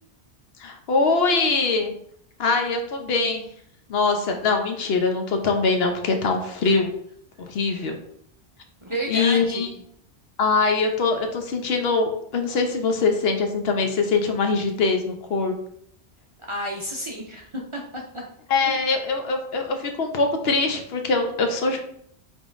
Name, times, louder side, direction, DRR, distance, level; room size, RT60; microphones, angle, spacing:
voice 1, 0.6-1.9 2.4-3.4 3.9-6.9 7.4-8.0 9.1-9.7 10.4-15.5 18.5-21.8, left 4 dB, 70° left, 4 dB, 0.9 m, -23 dB
voice 2, 8.8-9.7 16.5-18.2 18.6-18.7, right 1 dB, 35° right, -1 dB, 0.6 m, -31 dB
4.9 x 3.7 x 2.5 m, 0.67 s
omnidirectional pair, 1.1 m